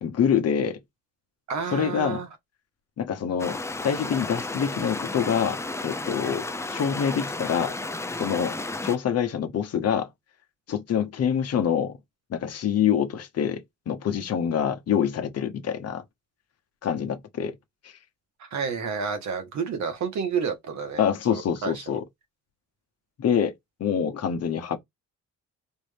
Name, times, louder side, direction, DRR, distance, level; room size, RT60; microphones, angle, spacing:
voice 1, 0.0-0.8 1.7-2.2 3.0-7.7 8.2-8.5 8.8-10.1 10.7-12.0 12.3-16.0 16.8-17.5 17.8-17.9 21.0-22.0 23.2-23.5 23.8-24.8, left 8 dB, 55° left, 0.9 m, -26 dB
voice 2, 1.5-2.3 18.4-21.0 21.3-21.8, right 6 dB, 65° right, 1.5 m, -30 dB
sound 1, 3.4-9.0, left 2 dB, 10° left, 0.5 m, -33 dB
4.4 x 2.7 x 3.4 m
cardioid pair, 90°, 30 cm